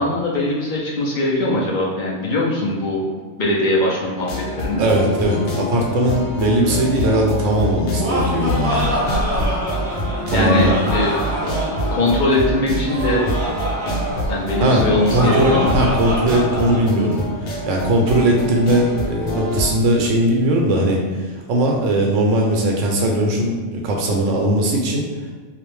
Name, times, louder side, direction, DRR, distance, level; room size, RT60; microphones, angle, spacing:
voice 1, 0.0-3.1 3.4-4.8 10.3-11.1 11.9-13.3 14.3-15.8, left 2 dB, 60° left, -4 dB, 0.5 m, -21 dB
sound 1, 4.2-19.7, left 1 dB, 80° left, 1.0 m, -26 dB
voice 2, 4.8-8.9 10.3-10.7 14.6-17.2 17.7-21.0 21.5-25.0, right 1 dB, 90° right, 0 dB, 1.0 m, -19 dB
Laughter, 7.7-16.8, equal, 15° right, 0.6 m, -25 dB
2.5 x 2.1 x 3.1 m, 1.4 s
omnidirectional pair, 1.3 m